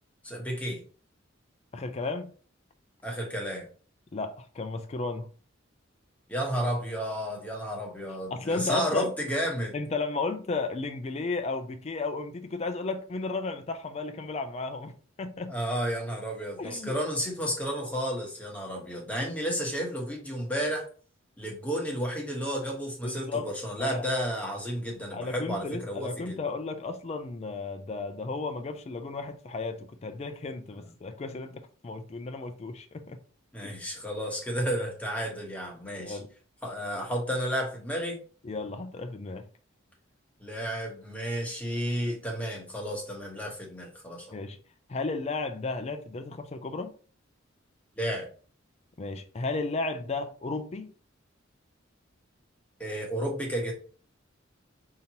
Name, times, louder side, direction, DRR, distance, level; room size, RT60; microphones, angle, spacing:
voice 1, 0.2-0.8 3.0-3.7 6.3-9.7 15.5-20.9 21.4-26.4 30.8-30.9 33.5-36.2 36.6-38.2 40.4-44.4 48.0-48.3 52.8-53.7, equal, 5° left, 1.1 m, -32 dB
voice 2, 1.7-2.3 4.1-5.3 8.3-9.1 9.7-15.5 16.6-17.0 23.0-23.5 23.8-24.0 25.1-33.2 33.6-33.7 36.0-36.3 38.4-39.4 44.3-44.6 44.9-46.9 49.0-50.9, left 3 dB, 35° left, 0.4 m, -34 dB
5.1 x 2.8 x 2.8 m
head